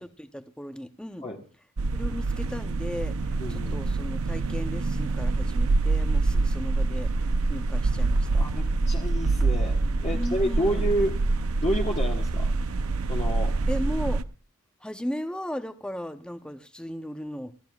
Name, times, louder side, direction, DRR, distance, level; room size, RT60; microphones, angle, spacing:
voice 1, 0.0-1.3 1.9-7.1 7.5-8.3 10.1-10.9 13.7-14.2 14.8-17.5, equal, 5° left, 8 dB, 0.8 m, -36 dB
sound 1, 1.8-14.2, right 3 dB, 70° right, 0.7 m, -26 dB
voice 2, 3.4-3.7 8.4-11.2 11.6-12.5 13.1-13.5, equal, 30° left, -1 dB, 1.5 m, -29 dB
29.5 x 13.5 x 2.4 m, 0.37 s
head